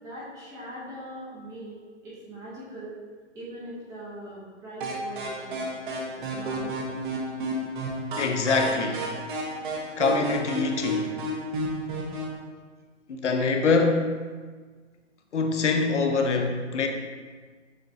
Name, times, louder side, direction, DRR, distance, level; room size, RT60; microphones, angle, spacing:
voice 1, 0.0-3.0 3.3-5.7 6.2-6.8, right 1 dB, 10° right, -7 dB, 0.5 m, -41 dB
sound 1, 4.8-12.4, right 1 dB, 45° right, 0.8 m, -32 dB
voice 2, 8.2-9.1 10.0-11.2 13.1-14.1 15.3-16.9, left 4 dB, 75° left, 4 dB, 0.7 m, -24 dB
7.0 x 2.9 x 2.6 m, 1.5 s
figure-of-eight pair, 135°, 37 cm